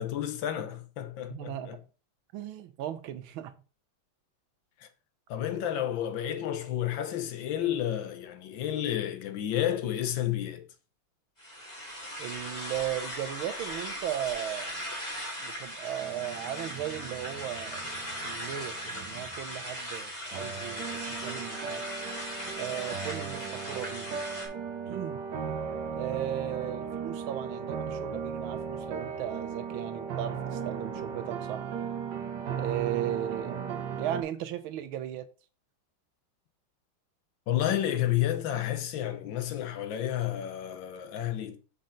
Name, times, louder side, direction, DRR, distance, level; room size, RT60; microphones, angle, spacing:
voice 1, 0.0-1.8 4.8-4.9 5.3-10.6 37.5-41.6, left 11 dB, 65° left, 1.6 m, -31 dB
voice 2, 1.3-1.8 2.3-3.5 12.2-14.9 15.4-21.8 22.6-24.1 24.8-25.2 25.9-31.7 32.6-35.3, right 11 dB, 75° right, 1.6 m, -36 dB
sound 1, 11.4-24.5, equal, 20° left, 2.4 m, -38 dB
sound 2, 16.0-19.9 20.3-34.2, right 6 dB, 60° right, 1.5 m, -37 dB
6.7 x 5.5 x 3.8 m
omnidirectional pair, 2.3 m